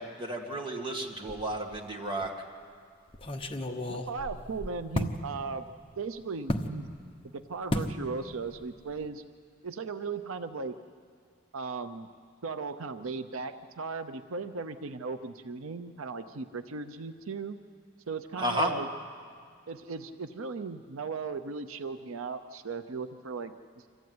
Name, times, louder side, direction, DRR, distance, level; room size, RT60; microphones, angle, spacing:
voice 1, 0.0-2.3 18.4-18.7, right 1 dB, 25° right, 2 dB, 2.1 m, -32 dB
sound 1, 1.3-1.9 2.2-2.3 3.1-5.2 6.5-6.7 7.7-8.0 8.3-8.6 8.9-9.1, left 1 dB, 25° left, 1.0 m, -33 dB
voice 2, 3.9-5.6 6.0-6.9 7.2-9.2 9.6-10.7 11.5-12.1 12.4-17.6 18.1-18.9 19.7-23.9, right 4 dB, 85° right, 10 dB, 0.7 m, -37 dB
25.5 x 14.5 x 9.5 m, 2.1 s
head